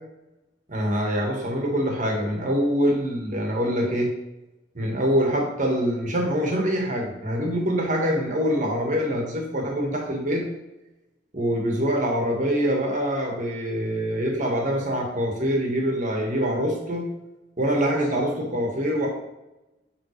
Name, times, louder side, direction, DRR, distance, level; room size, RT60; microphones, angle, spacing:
voice 1, 0.7-4.1 4.7-10.4 11.3-17.1 17.6-19.1, equal, 45° right, 0 dB, 1.5 m, -24 dB
9.6 x 3.7 x 3.2 m, 0.97 s
head